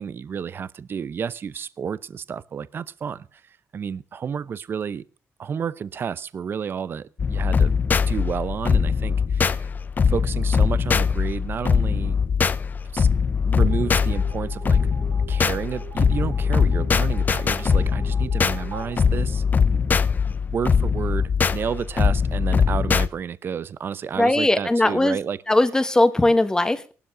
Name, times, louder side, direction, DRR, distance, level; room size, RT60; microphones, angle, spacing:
voice 1, 0.0-5.0 5.4-7.7 8.1-9.7 10.0-12.2 12.9-13.1 13.5-14.8 15.3-19.4 19.7-19.8 20.2-25.4, right 7 dB, 45° right, 0.7 m, -31 dB
sound 1, 7.2-23.1, left 6 dB, 35° left, 0.7 m, -21 dB
sound 2, 13.6-20.1, right 6 dB, 75° right, 5.3 m, -43 dB
voice 2, 24.2-25.2 25.5-26.9, left 2 dB, 15° left, 1.4 m, -19 dB
18.0 x 12.5 x 6.2 m
cardioid pair, 110°, 5 cm